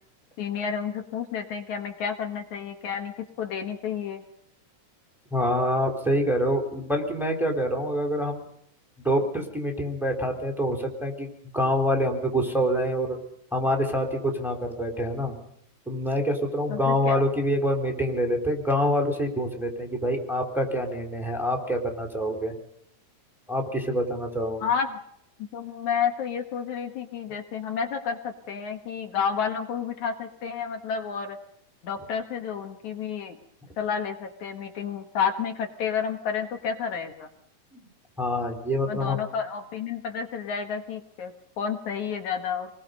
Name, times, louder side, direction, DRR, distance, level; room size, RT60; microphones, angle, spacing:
voice 1, 0.4-4.2 16.7-17.2 24.6-25.0 25.5-31.4 31.8-33.4 33.8-37.3 38.8-42.7, left 7 dB, 65° left, 4 dB, 2.9 m, -30 dB
voice 2, 5.3-8.4 9.0-13.2 13.5-15.4 15.9-22.5 23.5-24.6 37.7-37.8 38.2-39.2, equal, ahead, 3 dB, 3.9 m, -26 dB
28.5 x 21.0 x 5.4 m, 0.73 s
omnidirectional pair, 3.8 m